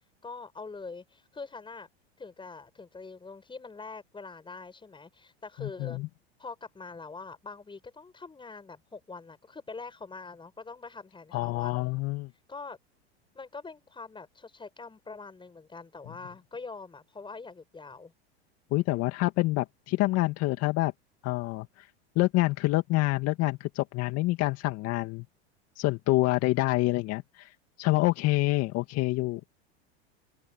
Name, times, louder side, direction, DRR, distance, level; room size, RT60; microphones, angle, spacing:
voice 1, 0.2-1.9 2.2-6.0 6.4-11.7 12.5-12.8 13.3-18.1, left 4 dB, 15° left, 6.8 m, -44 dB
voice 2, 5.6-6.1 11.3-12.3 18.7-20.9 21.2-21.9 22.2-25.2 25.8-29.4, left 19 dB, 50° left, 2.0 m, -27 dB
open air
hypercardioid pair, 100°, 32 cm